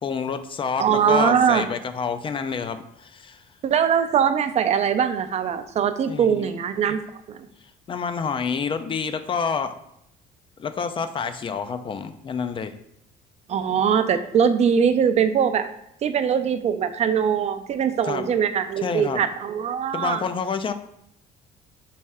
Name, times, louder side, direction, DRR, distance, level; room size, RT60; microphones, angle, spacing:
voice 1, 0.0-3.4 6.1-6.5 7.9-9.7 10.6-12.7 18.0-18.3 18.8-19.3 19.9-20.7, left 6 dB, 30° left, 10 dB, 0.4 m, -28 dB
voice 2, 0.8-1.7 3.6-7.0 7.3-7.5 13.5-15.7 16.0-20.2, right 7 dB, 40° right, 10 dB, 0.4 m, -21 dB
4.2 x 3.2 x 3.5 m, 0.79 s
cardioid pair, 110°, 17 cm